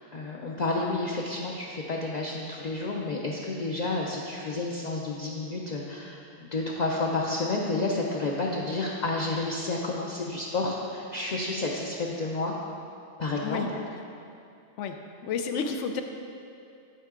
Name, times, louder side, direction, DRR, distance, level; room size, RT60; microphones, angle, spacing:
voice 1, 0.1-12.6 13.2-13.7, left 2 dB, 50° left, -2 dB, 0.6 m, -30 dB
voice 2, 14.8-16.0, left 6 dB, 80° left, 6 dB, 0.9 m, -31 dB
11.0 x 4.5 x 3.7 m, 2.6 s
omnidirectional pair, 1.2 m